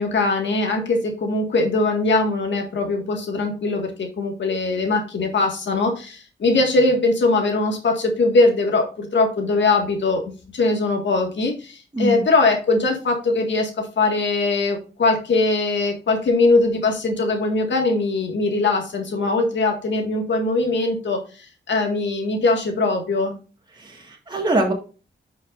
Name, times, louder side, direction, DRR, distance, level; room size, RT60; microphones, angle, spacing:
voice 1, 0.0-23.3, left 3 dB, 75° left, 3 dB, 1.9 m, -21 dB
voice 2, 11.9-12.2 23.8-24.7, right 2 dB, 25° right, 0 dB, 1.8 m, -23 dB
10.5 x 5.8 x 2.5 m, 0.35 s
cardioid pair, 85°, 19 cm